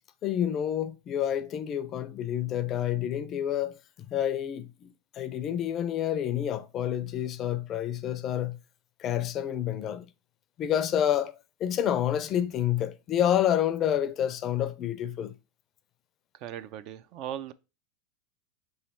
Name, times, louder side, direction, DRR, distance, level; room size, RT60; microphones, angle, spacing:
voice 1, 0.2-3.8 4.1-8.6 9.0-10.1 10.6-11.3 11.6-15.3, left 10 dB, 35° left, 0.4 m, -28 dB
voice 2, 16.4-17.5, right 11 dB, 50° right, 0.3 m, -38 dB
3.2 x 2.7 x 4.3 m
hypercardioid pair, 115°, 0 cm